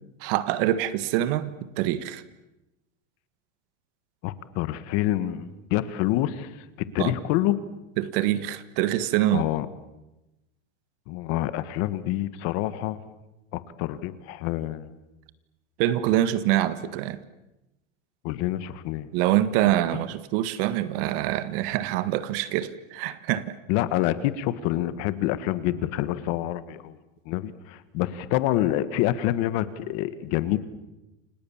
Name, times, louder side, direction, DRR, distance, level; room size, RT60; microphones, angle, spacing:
voice 1, 0.2-2.2 7.0-7.1 8.0-9.4 15.8-17.2 19.1-23.5, right 13 dB, 45° right, 14 dB, 1.6 m, -25 dB
voice 2, 4.2-6.5 6.8-7.6 9.3-9.7 11.1-13.0 13.5-14.9 18.2-19.1 23.7-27.0 27.2-30.6, left 14 dB, 40° left, 14 dB, 1.7 m, -27 dB
29.5 x 26.5 x 7.4 m, 0.97 s
supercardioid pair, 160°, 38 cm